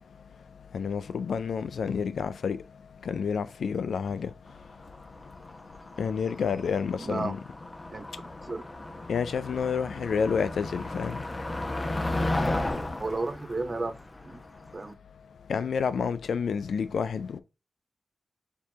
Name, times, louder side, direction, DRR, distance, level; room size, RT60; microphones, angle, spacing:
voice 1, 0.7-2.6 3.1-4.3 6.0-7.4 9.1-11.2 15.5-17.4, left 6 dB, 85° left, 0.3 m, -29 dB
Motor vehicle (road), 4.5-14.9, left 2 dB, 35° left, 0.9 m, -35 dB
voice 2, 7.0-7.4 7.9-8.6 13.0-13.9 14.2-14.4 14.7-14.9, right 3 dB, 45° right, 0.7 m, -33 dB
4.6 x 2.7 x 3.5 m
cardioid pair, 45°, 0 cm